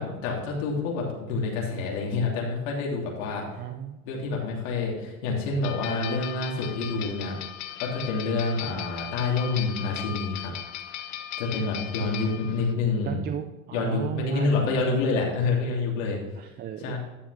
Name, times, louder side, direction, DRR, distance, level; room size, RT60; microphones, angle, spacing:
voice 1, 0.0-3.6 4.0-7.4 7.8-10.5 11.4-13.2 13.7-16.2 16.8-17.0, left 3 dB, 65° left, -2 dB, 2.9 m, -27 dB
voice 2, 3.3-4.0 13.1-15.1 16.4-17.0, right 10 dB, 25° right, 8 dB, 0.4 m, -35 dB
sound 1, 5.6-12.7, left 11 dB, 40° left, 1.0 m, -37 dB
11.0 x 7.1 x 3.4 m, 1.1 s
supercardioid pair, 115°, 41 cm